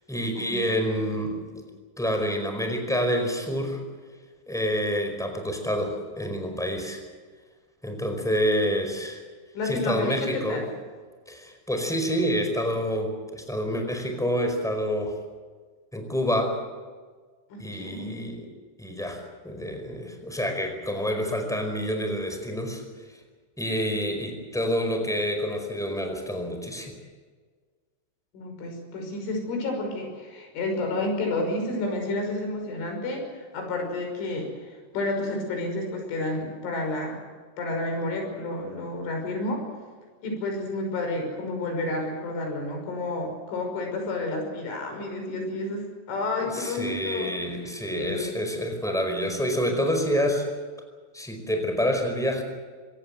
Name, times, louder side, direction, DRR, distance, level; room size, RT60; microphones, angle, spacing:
voice 1, 0.1-1.6 2.0-3.8 4.5-7.0 7.8-9.2 9.6-10.6 11.3-15.2 15.9-16.6 17.6-18.5 18.8-22.8 23.6-26.9 46.4-50.5 51.1-52.4, equal, ahead, 5 dB, 4.2 m, -28 dB
voice 2, 9.5-10.7 17.5-18.2 28.3-37.2 37.6-39.6 40.2-47.3 47.9-48.3, left 2 dB, 85° left, 3 dB, 8.2 m, -30 dB
25.5 x 18.5 x 7.9 m, 1.5 s
omnidirectional pair, 5.4 m